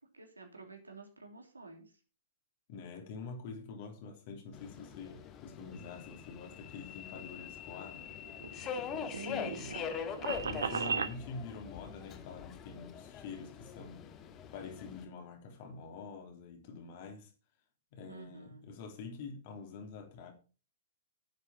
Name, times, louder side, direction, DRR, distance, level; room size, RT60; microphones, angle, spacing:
voice 1, 0.1-1.9 9.1-10.3 18.1-18.7, right 1 dB, 90° right, 3.1 m, -48 dB
voice 2, 2.7-8.1 9.3-9.7 10.4-14.1 14.5-17.3 17.9-20.3, left 5 dB, 50° left, 3.3 m, -46 dB
Subway metro underground, 4.5-15.0, left 8 dB, 30° left, 1.7 m, -43 dB
sound 1, 8.1-11.2, right 6 dB, 75° right, 1.2 m, -37 dB
9.7 x 8.3 x 5.5 m
figure-of-eight pair, 110°, 0 cm